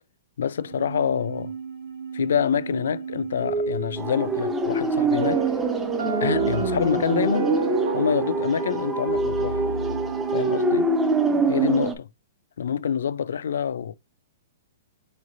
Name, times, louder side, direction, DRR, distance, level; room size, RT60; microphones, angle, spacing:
voice 1, 0.4-1.5 2.1-5.5 6.2-7.6 7.9-9.7 10.3-10.9 11.5-12.1 12.6-13.9, left 8 dB, 80° left, 0.3 m, -26 dB
sound 1, 0.6-11.8, right 5 dB, 55° right, 1.0 m, -33 dB
sound 2, 4.0-11.9, right 2 dB, 10° right, 0.4 m, -25 dB
Piano, 5.2-10.1, right 6 dB, 75° right, 1.3 m, -33 dB
4.8 x 3.1 x 2.6 m
hypercardioid pair, 170°, 0 cm